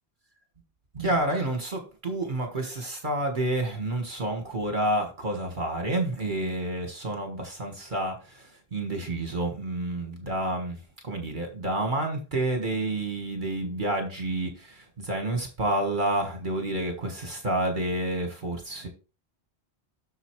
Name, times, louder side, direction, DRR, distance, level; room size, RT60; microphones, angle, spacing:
voice 1, 0.9-18.9, right 1 dB, 50° right, 1.7 m, -29 dB
8.0 x 6.8 x 3.1 m
omnidirectional pair, 1.1 m